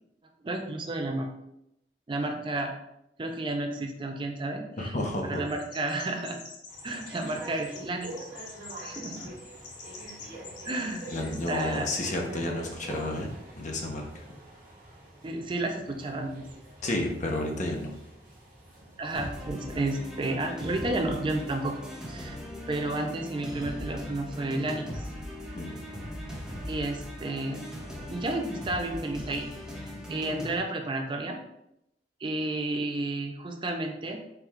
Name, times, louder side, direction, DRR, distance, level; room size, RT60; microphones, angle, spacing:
voice 1, 0.4-1.3 2.1-2.7 3.2-4.9 5.2-6.4 6.8-8.1 8.8-9.3 10.6-11.0 11.5-11.9 15.2-16.5 19.0-22.4 22.7-25.1 26.7-27.7 28.1-29.5 29.8-31.4 32.2-34.2, right 2 dB, 30° right, 4 dB, 0.4 m, -31 dB
voice 2, 4.8-5.4 11.1-14.2 16.8-17.9 25.6-25.8, left 1 dB, 45° left, 1 dB, 0.7 m, -31 dB
Chirp tweet, 5.5-12.0, left 4 dB, 80° left, 0.7 m, -46 dB
sound 1, 6.7-21.9, right 1 dB, 50° right, 1.4 m, -46 dB
sound 2, 19.1-30.6, left 1 dB, 5° right, 0.9 m, -39 dB
4.5 x 2.3 x 3.5 m, 0.82 s
head